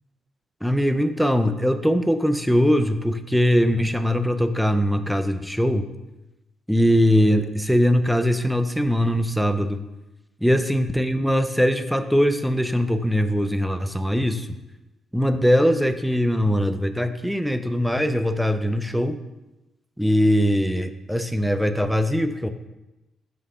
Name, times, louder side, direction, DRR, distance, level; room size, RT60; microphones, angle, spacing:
voice 1, 0.6-5.9 6.7-9.8 10.4-14.5 15.1-19.2 20.0-22.5, equal, ahead, 9 dB, 0.4 m, -21 dB
5.4 x 3.9 x 4.9 m, 1.0 s
cardioid pair, 90°, 0 cm